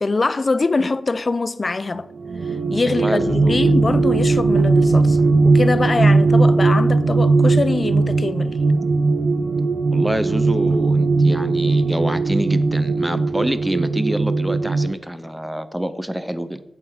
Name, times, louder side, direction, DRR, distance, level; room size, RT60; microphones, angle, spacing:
voice 1, 0.0-2.1 2.7-8.6, left 3 dB, 35° left, 0.4 m, -23 dB
sound 1, 2.1-14.9, right 3 dB, 70° right, 0.5 m, -18 dB
voice 2, 2.9-3.7 9.9-16.6, equal, 5° right, 0.6 m, -26 dB
Bass guitar, 3.2-6.9, left 2 dB, 15° left, 1.9 m, -33 dB
7.9 x 7.1 x 4.9 m
wide cardioid pair, 115°, 0 cm